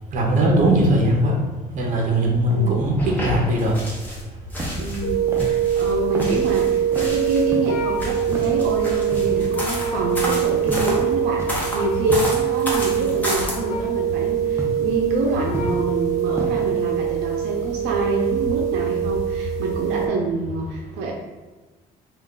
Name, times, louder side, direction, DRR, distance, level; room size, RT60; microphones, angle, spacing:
voice 1, 0.1-1.3 1.8-3.8, right 1 dB, 50° right, -1 dB, 0.7 m, -19 dB
sound 1, 2.5-2.7 3.0-3.4 4.5-5.0 5.3-5.9 6.1-6.3 6.7-7.1 7.5-7.7 8.2-8.5 8.8-9.4 9.7-10.3 10.6-11.6 12.0-12.4 13.1-13.6 14.6-14.8 15.3-15.9 16.2-16.7, equal, 15° right, 0.6 m, -32 dB
voice 2, 2.5-2.9 4.8-21.1, right 2 dB, 90° right, -1 dB, 0.4 m, -26 dB
sound 2, 3.0-4.2 4.5-7.5 7.9-11.0 11.5-13.5, equal, 10° left, 0.8 m, -30 dB
sound 3, 5.0-20.1, right 9 dB, 90° left, 0.6 m, -24 dB
2.3 x 2.3 x 3.6 m, 1.2 s
cardioid pair, 110°, 17 cm